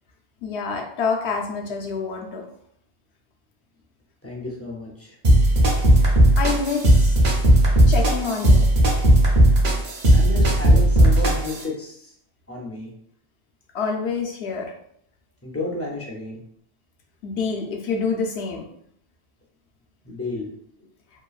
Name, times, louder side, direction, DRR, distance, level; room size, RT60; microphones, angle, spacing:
voice 1, 0.4-2.4 6.0-7.1 7.9-8.7 13.7-14.7 17.2-18.6, left 5 dB, 80° left, 1 dB, 0.9 m, -27 dB
voice 2, 4.2-5.2 10.1-12.1 12.5-12.9 15.4-16.4 20.0-20.5, left 2 dB, 20° left, -3 dB, 0.4 m, -31 dB
sound 1, 5.2-11.6, right 1 dB, 50° right, 0.6 m, -16 dB
2.9 x 2.3 x 2.3 m, 0.68 s
omnidirectional pair, 1.1 m